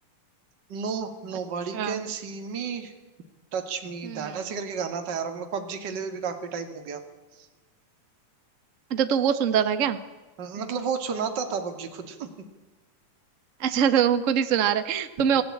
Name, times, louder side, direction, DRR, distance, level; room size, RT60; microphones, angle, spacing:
voice 1, 0.7-2.9 3.5-7.0 7.3-7.5 10.4-12.3 15.4-15.5, right 6 dB, 35° right, 6 dB, 2.4 m, -32 dB
voice 2, 8.9-10.0 13.6-15.4, right 8 dB, 60° right, 10 dB, 0.8 m, -23 dB
26.5 x 17.5 x 8.7 m, 1.2 s
omnidirectional pair, 3.7 m